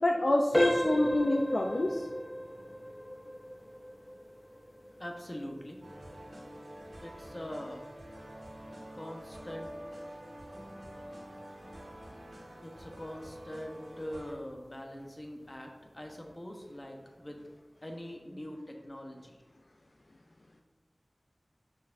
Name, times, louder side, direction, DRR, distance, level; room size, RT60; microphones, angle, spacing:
voice 1, 0.0-2.1, left 1 dB, 70° left, 1 dB, 0.4 m, -27 dB
sound 1, 0.5-11.2 11.6-11.8 12.4-12.5 13.0-13.1, equal, 15° left, 0.7 m, -37 dB
voice 2, 5.0-5.9 7.0-7.9 8.2-8.3 8.9-9.8 11.8-11.9 12.6-17.4 17.8-19.4, equal, 35° left, 2 dB, 1.0 m, -43 dB
sound 2, 5.8-14.3, equal, 70° right, 1.7 m, -47 dB
7.0 x 6.0 x 2.6 m, 1.3 s
wide cardioid pair, 50°, 0 cm